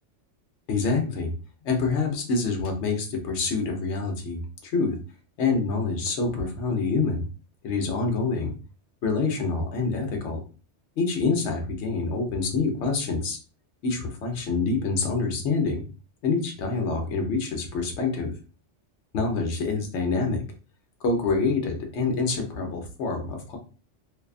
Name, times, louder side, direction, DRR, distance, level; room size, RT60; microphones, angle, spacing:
voice 1, 0.7-1.3 1.6-5.0 5.4-7.2 7.6-8.5 9.0-10.4 11.0-13.4 13.8-15.8 16.2-18.3 19.1-20.4 21.0-23.6, left 4 dB, 75° left, 3 dB, 1.0 m, -26 dB
2.6 x 2.2 x 2.3 m, 0.36 s
omnidirectional pair, 1.2 m